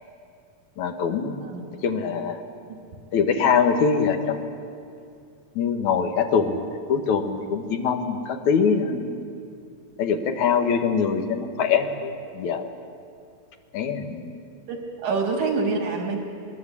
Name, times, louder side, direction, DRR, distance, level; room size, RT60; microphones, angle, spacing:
voice 1, 0.8-1.4 1.8-2.4 3.1-4.5 5.6-9.1 10.0-12.7 13.7-14.4, left 6 dB, 80° left, 6 dB, 2.7 m, -23 dB
voice 2, 15.0-16.4, right 4 dB, 85° right, 1 dB, 3.9 m, -26 dB
21.0 x 20.5 x 8.4 m, 2.5 s
omnidirectional pair, 3.3 m